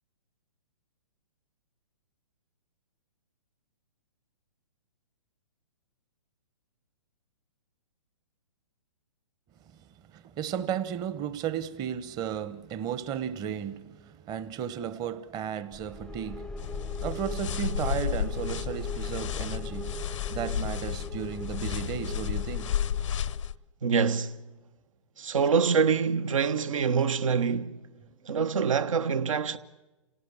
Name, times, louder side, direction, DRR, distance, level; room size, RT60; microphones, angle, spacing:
voice 1, 10.1-22.8, right 9 dB, 20° right, 1.1 m, -34 dB
sound 1, 15.7-23.5, left 2 dB, 5° left, 0.7 m, -39 dB
sound 2, 16.6-23.6, left 9 dB, 65° left, 0.7 m, -32 dB
voice 2, 23.8-24.3 25.2-27.8 28.2-29.6, right 6 dB, 70° right, 1.4 m, -25 dB
28.0 x 18.0 x 8.4 m
hypercardioid pair, 130°, 18 cm